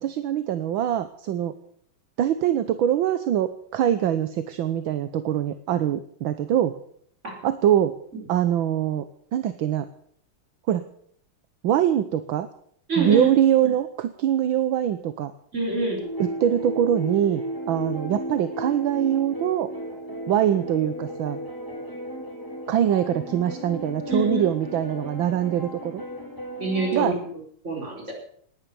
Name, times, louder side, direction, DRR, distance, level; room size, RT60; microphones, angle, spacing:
voice 1, 0.0-1.5 2.2-6.7 7.4-7.9 8.3-9.0 9.3-9.9 10.7-10.8 11.6-12.5 13.0-15.3 16.2-19.7 20.3-21.4 22.7-26.0 26.9-27.2, right 10 dB, 70° right, 12 dB, 1.6 m, -23 dB
voice 2, 12.9-13.3 15.5-16.0 24.1-24.4 26.6-27.1 27.6-28.1, right 2 dB, 30° right, 1 dB, 4.6 m, -25 dB
sound 1, 16.0-27.0, equal, 10° left, 3.4 m, -34 dB
19.0 x 10.5 x 6.9 m, 0.62 s
omnidirectional pair, 2.4 m